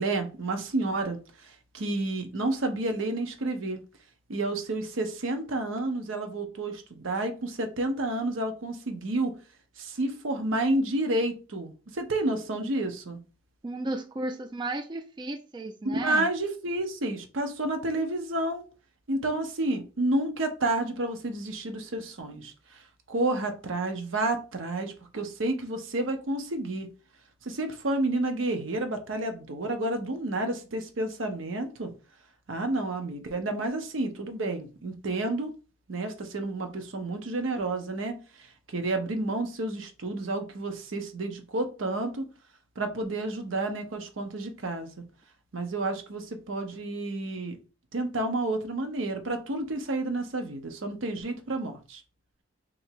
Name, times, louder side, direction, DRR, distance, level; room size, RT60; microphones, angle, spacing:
voice 1, 0.0-3.8 4.3-9.3 9.8-13.2 15.8-18.6 19.1-22.8 23.1-26.9 27.4-31.9 32.5-35.6 35.9-42.2 42.8-44.9 45.5-47.6 47.9-52.0, right 2 dB, 80° right, 0.8 m, -30 dB
voice 2, 13.6-16.3, right 2 dB, 25° right, 0.4 m, -34 dB
2.9 x 2.7 x 4.4 m
head